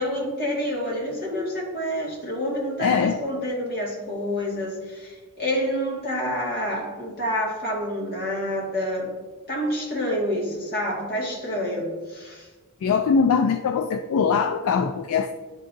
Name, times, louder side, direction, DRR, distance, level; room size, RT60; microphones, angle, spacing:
voice 1, 0.0-9.1 9.5-12.5, equal, 45° left, -3 dB, 1.8 m, -28 dB
voice 2, 2.8-3.2 12.8-15.3, left 6 dB, 65° left, 8 dB, 0.3 m, -22 dB
10.5 x 3.8 x 2.6 m, 1.3 s
head